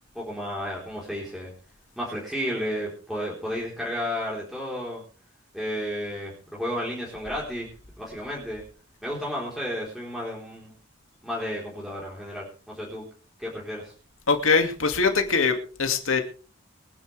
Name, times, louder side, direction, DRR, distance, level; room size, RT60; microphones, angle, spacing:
voice 1, 0.1-1.5 2.0-5.0 5.5-7.7 8.0-8.6 9.0-10.7 11.2-13.0 13.4-13.9, equal, ahead, -5 dB, 4.1 m, -32 dB
voice 2, 14.3-16.2, left 4 dB, 80° left, 5 dB, 2.3 m, -22 dB
23.5 x 10.5 x 3.4 m, 0.40 s
head